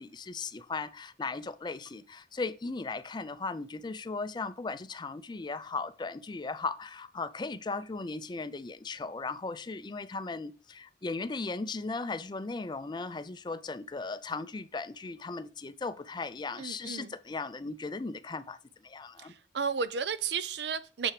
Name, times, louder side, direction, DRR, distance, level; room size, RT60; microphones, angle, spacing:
voice 1, 0.0-18.6 18.8-19.3, left 3 dB, 25° left, 0.4 m, -37 dB
voice 2, 16.6-17.1 19.2-21.1, right 6 dB, 70° right, 0.6 m, -33 dB
7.0 x 5.6 x 3.2 m
head